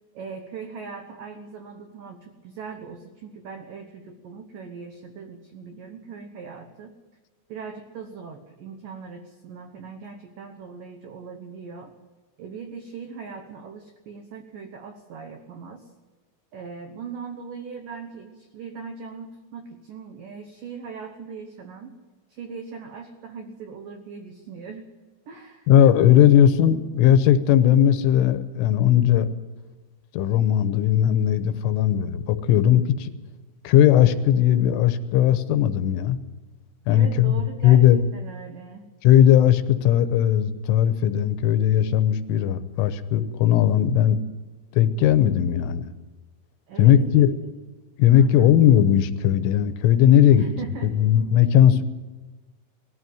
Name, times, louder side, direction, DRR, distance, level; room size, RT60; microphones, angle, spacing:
voice 1, 0.1-6.9 7.5-11.9 12.4-15.9 16.5-22.0 22.3-24.9 25.3-25.7 26.3-26.4 36.9-37.8 38.1-38.9 46.7-47.4 48.1-48.5 50.3-51.0, right 5 dB, 80° right, 5 dB, 1.9 m, -39 dB
voice 2, 25.7-29.3 30.1-33.1 33.6-36.2 36.9-38.0 39.0-44.2 44.7-45.8 46.8-47.3 48.0-50.4 51.0-51.8, left 10 dB, 80° left, 11 dB, 3.3 m, -18 dB
20.0 x 14.5 x 9.4 m, 1.2 s
omnidirectional pair, 5.8 m